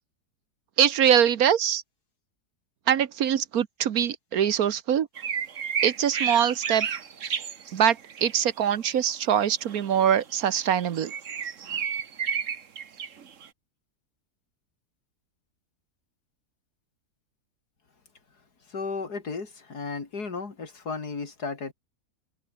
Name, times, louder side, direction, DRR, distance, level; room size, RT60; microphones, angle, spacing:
voice 1, 0.8-1.8 2.9-5.1 5.8-6.9 7.7-11.1, right 9 dB, 70° right, 1.4 m, -23 dB
sound 1, 5.2-8.3 8.6-8.8 9.6-13.5, right 7 dB, 55° right, 1.5 m, -31 dB
voice 2, 18.7-21.7, left 4 dB, 80° left, 3.5 m, -34 dB
omnidirectional pair, 1.7 m